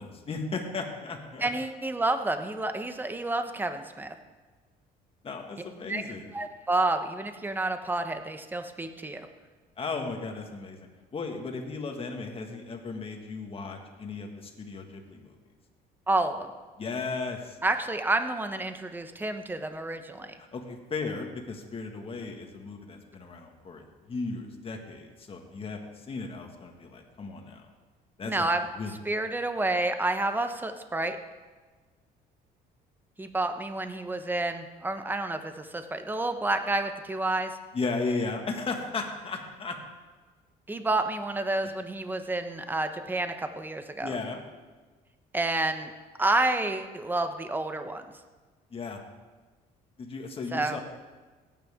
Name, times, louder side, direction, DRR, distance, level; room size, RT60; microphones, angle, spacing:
voice 1, 0.0-1.5 5.2-6.3 9.8-15.4 16.8-17.6 20.4-27.6 28.2-28.5 28.8-29.0 37.7-39.8 44.0-44.4 48.7-49.0 50.0-50.8, left 4 dB, 35° left, 3 dB, 1.8 m, -35 dB
voice 2, 1.4-4.1 5.9-6.0 6.3-9.3 16.1-16.5 17.6-20.3 28.2-28.6 29.0-31.2 33.2-37.6 40.7-44.1 45.3-45.9 46.2-48.0 50.5-50.8, right 2 dB, 10° right, 8 dB, 0.9 m, -29 dB
17.0 x 9.2 x 3.7 m, 1.4 s
cardioid pair, 110°, 17 cm